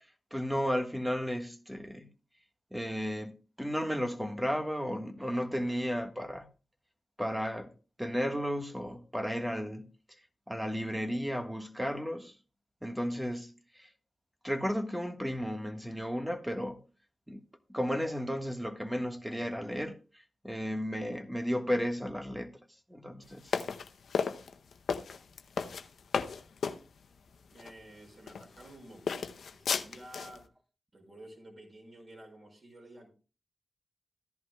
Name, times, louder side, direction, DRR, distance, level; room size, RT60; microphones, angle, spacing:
voice 1, 0.3-2.1 2.7-6.5 7.2-7.7 8.0-9.9 10.5-12.3 12.8-13.9 14.4-16.8 17.3-17.4 17.7-20.0 20.4-22.5 22.9-23.5, equal, 5° right, 1.5 m, -33 dB
sound 1, 23.5-26.8 27.6-27.7 28.3-28.7 29.1-30.4, left 6 dB, 80° left, 0.7 m, -33 dB
voice 2, 25.7-26.0 27.5-30.5 30.9-33.1, right 1 dB, 50° right, 5.6 m, -52 dB
14.5 x 11.0 x 2.3 m
cardioid pair, 45°, 0 cm